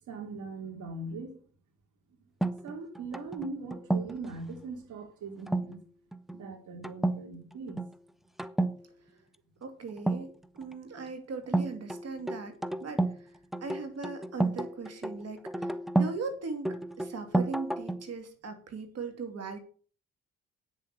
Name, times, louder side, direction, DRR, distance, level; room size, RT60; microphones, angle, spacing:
voice 1, 0.1-1.4 2.6-5.8 6.3-7.9, right 3 dB, 75° right, 3 dB, 3.6 m, -40 dB
sound 1, 2.4-4.3 5.5-5.8 6.1-6.4 6.8-7.2 7.5-7.9 8.4-8.8 10.0-10.7 11.5-13.2 13.5-16.2 16.6-18.1, right 2 dB, ahead, 0.8 m, -31 dB
voice 2, 9.6-13.3 13.6-19.6, right 4 dB, 55° right, 6 dB, 2.7 m, -39 dB
9.0 x 7.1 x 7.0 m, 0.42 s
cardioid pair, 90°, 30 cm